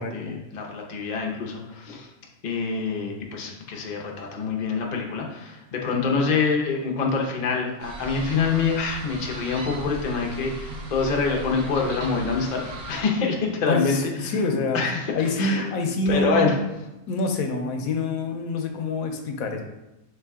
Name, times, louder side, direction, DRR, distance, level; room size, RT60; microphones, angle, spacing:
voice 1, 0.0-2.1 2.4-14.4 14.7-15.7 16.1-16.6, left 4 dB, 50° left, 0 dB, 0.5 m, -26 dB
sound 1, 7.8-13.0, right 1 dB, 75° right, 1.3 m, -37 dB
voice 2, 13.7-16.6 17.1-19.6, left 2 dB, 70° left, 4 dB, 1.0 m, -26 dB
4.3 x 3.3 x 3.5 m, 0.94 s
omnidirectional pair, 1.6 m